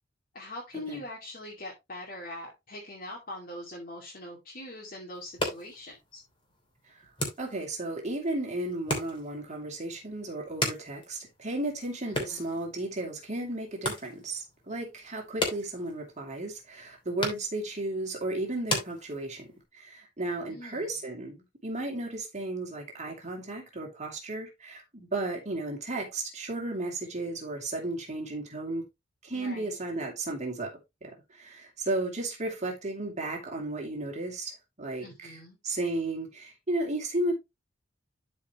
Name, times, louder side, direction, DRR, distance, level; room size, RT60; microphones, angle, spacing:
voice 1, 0.3-6.2 12.1-12.5 20.5-20.9 29.3-29.8 35.0-35.6, left 1 dB, 50° left, 2.4 m, -42 dB
sound 1, 5.1-19.6, left 1 dB, 25° left, 2.9 m, -38 dB
voice 2, 7.4-19.5 19.7-28.9 29.2-35.4 35.6-37.4, right 2 dB, 40° right, 2.6 m, -34 dB
12.0 x 4.9 x 3.0 m
head